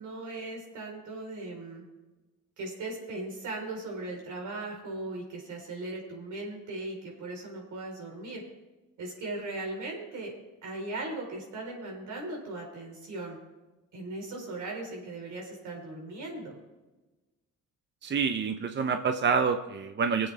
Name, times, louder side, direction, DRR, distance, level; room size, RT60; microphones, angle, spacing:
voice 1, 0.0-1.8 2.6-8.4 9.0-10.3 10.6-13.4 13.9-16.6, right 2 dB, 75° right, -1 dB, 4.3 m, -38 dB
voice 2, 18.0-20.3, right 5 dB, 35° right, 7 dB, 0.7 m, -27 dB
21.0 x 8.0 x 3.4 m, 1.1 s
cardioid pair, 90°, 30 cm